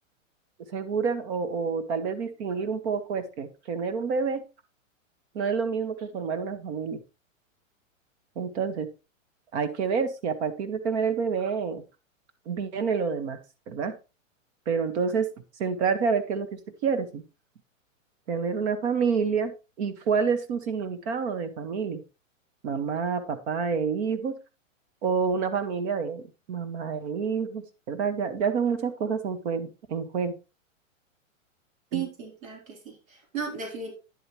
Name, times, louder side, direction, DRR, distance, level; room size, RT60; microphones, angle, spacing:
voice 1, 0.7-4.4 5.3-7.0 8.3-8.9 9.5-11.8 12.4-13.4 13.7-13.9 14.7-15.3 15.6-17.2 18.3-22.0 22.6-24.4 25.0-30.3 31.9-32.0, right 5 dB, 55° right, 9 dB, 1.6 m, -28 dB
voice 2, 31.9-33.9, right 6 dB, 80° right, 0 dB, 3.8 m, -35 dB
10.0 x 7.9 x 3.1 m, 0.29 s
hypercardioid pair, 135°, 40 cm